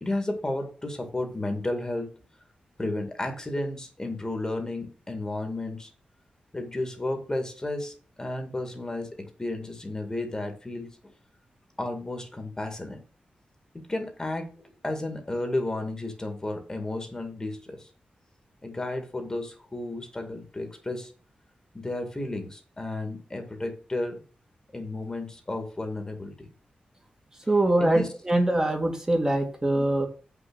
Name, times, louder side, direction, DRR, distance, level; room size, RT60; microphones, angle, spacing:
voice 1, 0.0-2.1 2.8-5.9 6.5-11.1 11.8-13.0 13.9-14.5 14.8-17.9 18.6-21.1 21.7-24.2 24.7-26.5 27.8-28.1, left 2 dB, 25° left, 5 dB, 2.2 m, -32 dB
voice 2, 27.5-30.1, right 1 dB, 20° right, 2 dB, 2.2 m, -23 dB
7.7 x 6.1 x 6.3 m, 0.37 s
wide cardioid pair, 95°, 3 cm